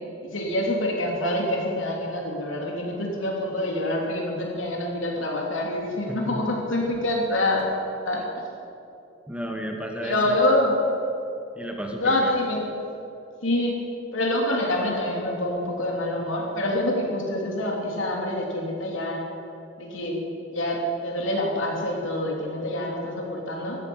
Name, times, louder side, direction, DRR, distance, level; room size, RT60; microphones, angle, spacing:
voice 1, 0.2-7.7 8.0-8.2 10.0-10.8 12.0-12.6 13.4-13.8 14.1-19.2 19.8-20.2 20.5-23.8, left 1 dB, 80° left, -1 dB, 3.0 m, -26 dB
voice 2, 6.1-6.5 9.3-10.4 11.5-12.3, equal, 5° right, 2 dB, 1.1 m, -33 dB
14.0 x 9.7 x 8.7 m, 2.8 s
head